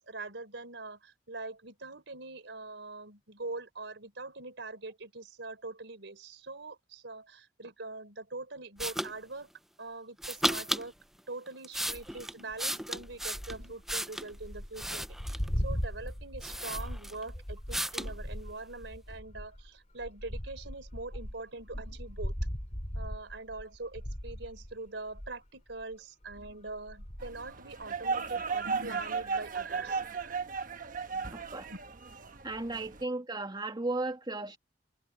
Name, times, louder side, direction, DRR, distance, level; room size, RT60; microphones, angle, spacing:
voice 1, 0.0-9.5 9.8-10.9 11.3-22.3 22.9-30.4 31.1-31.4 31.7-31.8 32.5-32.9, right 3 dB, 80° right, 3.7 m, -43 dB
sound 1, 8.8-9.1 10.2-10.9 11.5-14.3 14.7-15.5 16.1-16.2 16.4-17.3 17.7-18.1, right 1 dB, ahead, 0.5 m, -34 dB
sound 2, 11.9-12.2 12.9-25.4 25.7-25.9 26.2-27.9, equal, 40° left, 4.1 m, -39 dB
sound 3, 27.2-33.0, right 5 dB, 50° right, 1.2 m, -35 dB
voice 2, 31.3-31.7 32.4-34.6, right 2 dB, 25° right, 2.4 m, -35 dB
head